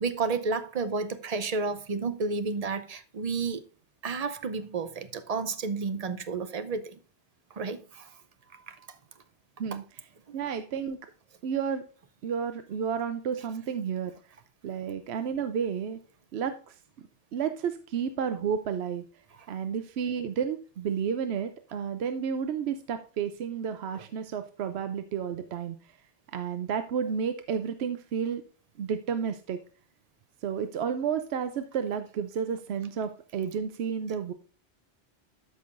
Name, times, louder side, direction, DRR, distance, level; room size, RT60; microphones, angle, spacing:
voice 1, 0.0-3.6 4.0-7.0 7.5-8.1 8.5-8.8 23.9-24.0, right 4 dB, 45° right, 0.6 m, -31 dB
voice 2, 10.3-11.0 11.4-11.8 12.2-14.1 14.6-16.0 16.3-16.8 17.3-19.0 19.5-26.0 26.3-28.4 28.8-29.6 30.4-34.3, right 7 dB, 70° right, 0.8 m, -31 dB
13.0 x 5.6 x 2.5 m
omnidirectional pair, 1.2 m